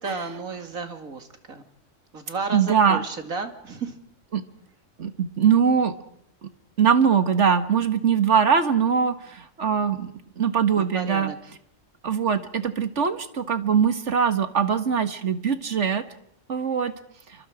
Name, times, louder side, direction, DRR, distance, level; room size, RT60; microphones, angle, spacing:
voice 1, 0.0-1.6 2.1-4.0 10.8-11.4, right 4 dB, 85° right, 6 dB, 2.7 m, -33 dB
voice 2, 2.5-3.0 4.3-4.4 5.0-5.9 6.4-6.5 6.8-11.3 12.0-16.0 16.5-16.9, right 7 dB, 60° right, 9 dB, 1.9 m, -22 dB
28.5 x 24.5 x 5.0 m, 0.73 s
omnidirectional pair, 1.4 m